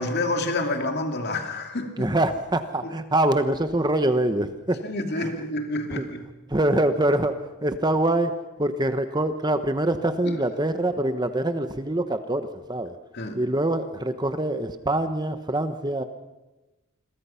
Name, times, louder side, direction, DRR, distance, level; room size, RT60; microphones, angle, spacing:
voice 1, 0.0-2.1 2.8-2.9 4.8-6.3 10.2-10.4 13.1-13.4, left 2 dB, 45° left, 5 dB, 2.6 m, -28 dB
voice 2, 2.0-4.8 5.2-5.3 5.9-6.0 6.5-8.3 8.6-12.9 13.3-16.0, right 1 dB, 20° right, 9 dB, 1.0 m, -24 dB
28.0 x 22.0 x 5.8 m, 1.1 s
head